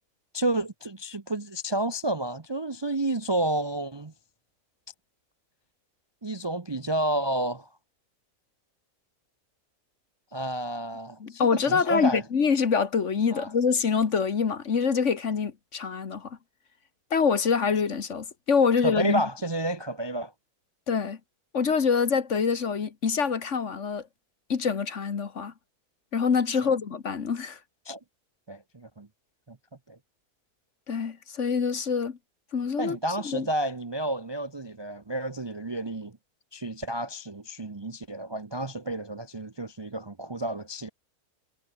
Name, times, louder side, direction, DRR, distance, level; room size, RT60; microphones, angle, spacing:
voice 1, 0.3-4.1 6.2-7.7 10.3-12.2 13.3-13.5 18.8-20.3 26.6-26.8 27.8-28.0 28.5-29.1 29.5-29.6 29.9-30.0 32.8-36.2 36.5-40.9, right 1 dB, 25° right, 0.7 m, -30 dB
voice 2, 11.2-16.4 17.1-19.2 20.9-21.2 21.5-24.1 24.5-25.5 26.1-27.6 30.9-32.2 32.5-33.0 33.2-33.5, left 6 dB, 50° left, 1.7 m, -25 dB
omnidirectional pair, 1.6 m